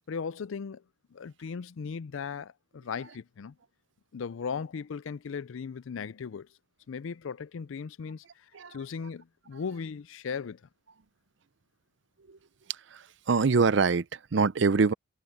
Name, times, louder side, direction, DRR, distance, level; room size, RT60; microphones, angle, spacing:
voice 1, 0.1-0.8 1.1-3.6 4.1-6.5 6.9-10.6, left 6 dB, 75° left, 0.4 m, -37 dB
voice 2, 12.7-14.9, right 4 dB, 65° right, 0.5 m, -25 dB
head